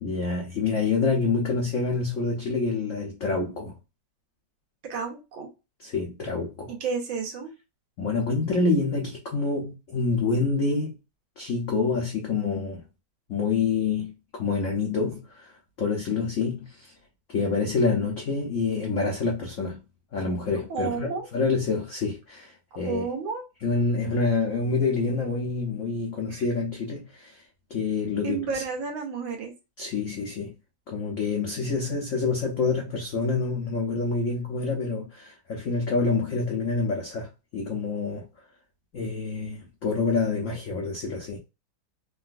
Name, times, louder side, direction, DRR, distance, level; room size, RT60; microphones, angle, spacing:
voice 1, 0.0-3.7 5.8-6.7 8.0-11.0 11.4-12.8 13.3-15.5 15.8-16.9 17.3-19.8 20.1-23.0 23.6-27.4 27.7-28.6 29.8-30.5 30.9-38.2 38.9-41.4, left 4 dB, 70° left, 0.7 m, -27 dB
voice 2, 4.9-5.5 6.7-7.5 20.7-21.3 22.7-23.4 26.3-26.4 28.2-29.5, right 5 dB, 75° right, 1.6 m, -31 dB
3.7 x 2.3 x 2.4 m
omnidirectional pair, 2.2 m